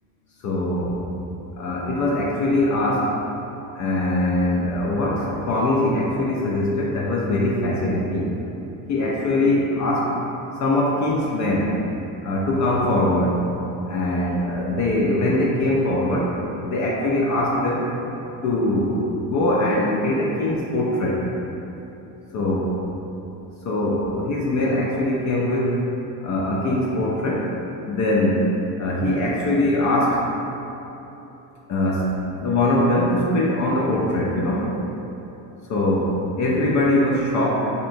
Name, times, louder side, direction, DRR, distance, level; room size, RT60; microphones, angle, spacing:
voice 1, 0.4-1.0 1.6-3.1 3.7-8.3 8.9-10.1 10.6-11.7 12.2-13.5 13.9-16.3 16.7-17.9 18.4-21.2 22.3-22.7 23.6-25.8 26.2-27.5 27.8-30.2 31.7-34.8 35.7-37.7, left 1 dB, 40° left, -3 dB, 0.5 m, -22 dB
3.2 x 2.8 x 2.6 m, 3.0 s
hypercardioid pair, 65°, 47 cm